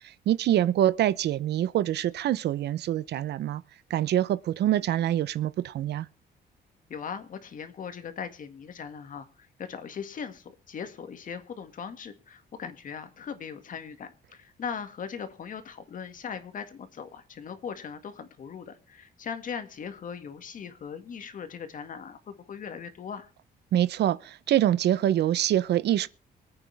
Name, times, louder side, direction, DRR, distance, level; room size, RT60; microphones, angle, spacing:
voice 1, 0.3-3.6 3.9-6.1 23.7-26.1, right 12 dB, 75° right, 0.7 m, -25 dB
voice 2, 6.9-23.3, left 7 dB, 50° left, 2.0 m, -39 dB
24.5 x 8.8 x 3.4 m
cardioid pair, 150°, 17 cm